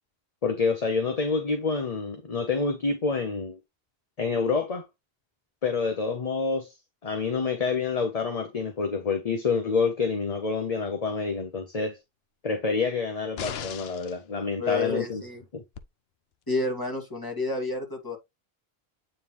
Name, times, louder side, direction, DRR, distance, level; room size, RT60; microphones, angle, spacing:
voice 1, 0.4-3.6 4.2-4.8 5.6-6.8 7.0-12.0 12.4-15.2 15.5-15.6, left 4 dB, 40° left, 1.0 m, -27 dB
sound 1, 13.4-14.2 15.8-15.9, left 8 dB, 75° left, 0.9 m, -36 dB
voice 2, 14.6-15.4 16.5-18.2, left 3 dB, 20° left, 2.3 m, -30 dB
9.0 x 3.6 x 3.1 m
omnidirectional pair, 1.1 m